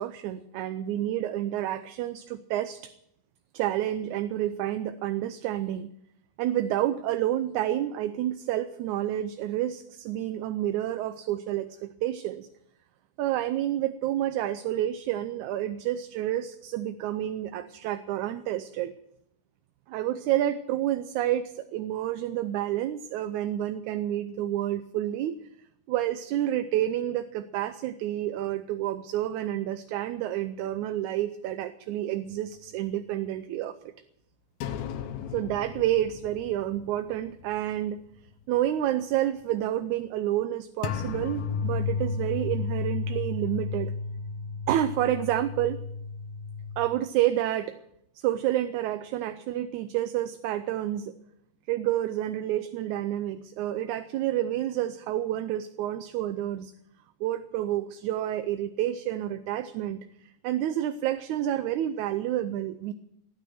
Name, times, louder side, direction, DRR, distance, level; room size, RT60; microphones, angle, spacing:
voice 1, 0.0-2.9 3.5-5.9 6.4-12.5 13.2-18.9 19.9-25.4 25.9-33.9 35.3-38.0 38.5-43.9 44.7-45.8 46.8-47.8 48.2-51.1 51.7-56.7 57.2-62.9, right 12 dB, 80° right, 11 dB, 2.1 m, -29 dB
sound 1, 34.6-37.7 38.1-38.2 40.8-46.9, left 5 dB, 70° left, 2.2 m, -33 dB
18.0 x 9.6 x 7.9 m, 0.76 s
omnidirectional pair, 3.5 m